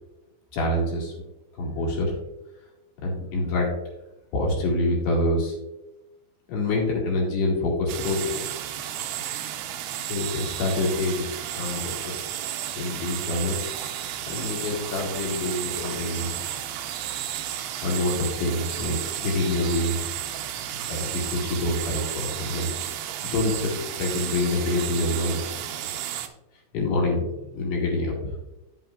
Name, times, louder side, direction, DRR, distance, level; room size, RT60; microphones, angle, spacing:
voice 1, 0.5-1.1 1.6-2.2 3.0-3.7 4.3-5.6 6.5-8.4 10.1-11.3 11.6-12.2 12.8-13.6 14.3-16.3 17.8-19.0 19.2-20.0 20.9-22.7 23.2-25.4 26.7-28.4, left 2 dB, 65° left, -2 dB, 3.7 m, -26 dB
sound 1, 7.9-26.3, right 11 dB, 90° right, 2.3 m, -33 dB
10.5 x 8.2 x 2.3 m, 0.95 s
omnidirectional pair, 5.5 m